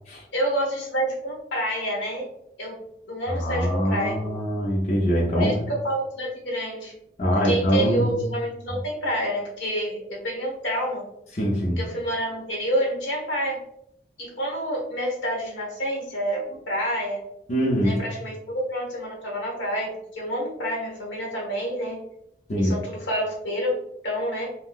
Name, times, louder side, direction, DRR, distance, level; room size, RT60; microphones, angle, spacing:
voice 1, 0.3-2.3 2.6-2.8 3.1-4.1 5.3-6.9 7.2-11.1 11.8-13.6 14.2-17.2 17.8-22.0 22.6-23.7 24.0-24.5, equal, 90° left, -2 dB, 1.1 m, -28 dB
voice 2, 3.3-5.6 7.2-8.2 11.3-11.8 17.5-18.0 22.5-22.8, equal, 40° left, -4 dB, 0.5 m, -23 dB
3.7 x 2.2 x 2.3 m, 0.78 s
head